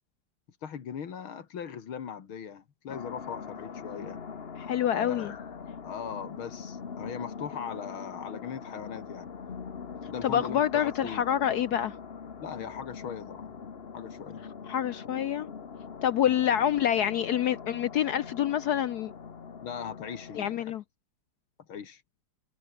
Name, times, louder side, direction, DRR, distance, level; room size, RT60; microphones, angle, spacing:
voice 1, 0.6-4.2 4.9-5.5 5.8-9.3 10.1-11.3 12.4-13.5 13.9-14.4 16.2-16.4 19.6-20.7 21.7-22.0, left 7 dB, 85° left, 2.7 m, -39 dB
sound 1, 2.9-20.6, left 6 dB, 35° left, 1.2 m, -42 dB
voice 2, 4.6-5.3 10.2-12.0 14.7-15.5 16.0-19.1 20.4-20.8, left 10 dB, 70° left, 1.0 m, -27 dB
omnidirectional pair, 2.2 m